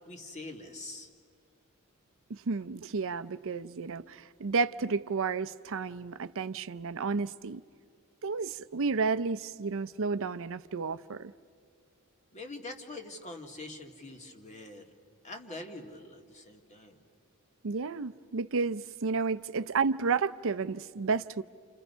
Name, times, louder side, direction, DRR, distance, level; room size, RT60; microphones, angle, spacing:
voice 1, 0.1-1.1 12.3-14.9 15.2-17.0, left 2 dB, 35° left, 2.2 m, -44 dB
voice 2, 2.3-7.6 8.2-11.3 17.6-21.4, right 4 dB, 65° right, 0.6 m, -31 dB
29.5 x 29.0 x 5.6 m
head